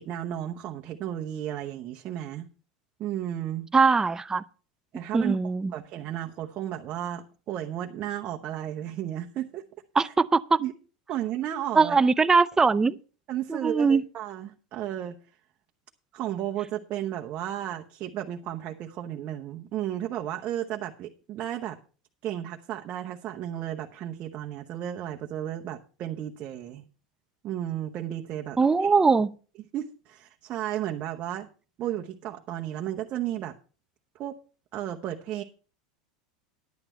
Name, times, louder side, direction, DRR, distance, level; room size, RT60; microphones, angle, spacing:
voice 1, 0.0-2.5 3.0-3.7 4.9-5.4 5.7-9.6 10.0-10.1 10.6-10.7 11.1-12.0 13.3-15.2 16.1-21.8 22.2-26.8 27.4-28.9 29.7-31.5 31.8-33.5 34.1-34.4 34.7-35.4, right 11 dB, 45° right, 1.0 m, -33 dB
voice 2, 3.7-4.4 5.1-5.7 10.0-10.6 11.7-13.0 13.5-14.0 28.6-29.3, right 4 dB, 15° right, 0.6 m, -21 dB
10.5 x 8.9 x 4.4 m
hypercardioid pair, 100°, 4 cm